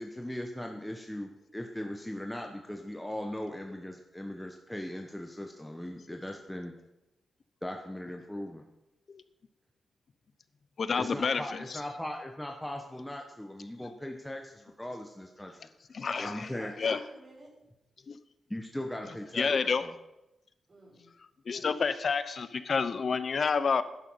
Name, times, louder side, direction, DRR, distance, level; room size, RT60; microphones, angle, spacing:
voice 1, 0.0-6.7 7.6-8.6 11.0-15.7 16.2-16.7 18.5-19.5 19.8-19.9, left 1 dB, 5° left, 2 dB, 1.3 m, -39 dB
voice 2, 10.8-11.8 13.8-13.9 15.9-16.5 16.8-17.0 18.1-18.2 19.3-19.9 21.4-23.8, left 5 dB, 55° left, 13 dB, 0.8 m, -29 dB
voice 3, 16.0-17.7 20.7-21.1, right 2 dB, 40° right, -4 dB, 5.1 m, -49 dB
11.5 x 10.5 x 5.7 m, 0.93 s
cardioid pair, 85°, 0 cm